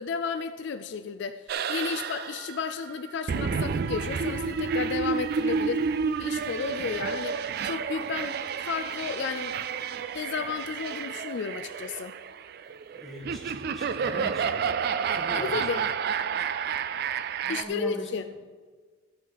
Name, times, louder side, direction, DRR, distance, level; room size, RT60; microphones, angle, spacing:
voice 1, 0.0-5.9 6.2-8.4 8.6-9.6 10.1-12.2 15.3-15.8 17.5-18.2, left 5 dB, 60° left, 9 dB, 0.4 m, -33 dB
sound 1, 1.5-17.6, right 6 dB, 50° right, 0.3 m, -30 dB
voice 2, 12.9-14.7 15.1-15.6 17.4-18.4, equal, ahead, -4 dB, 1.8 m, -40 dB
13.5 x 5.5 x 4.0 m, 1.5 s
head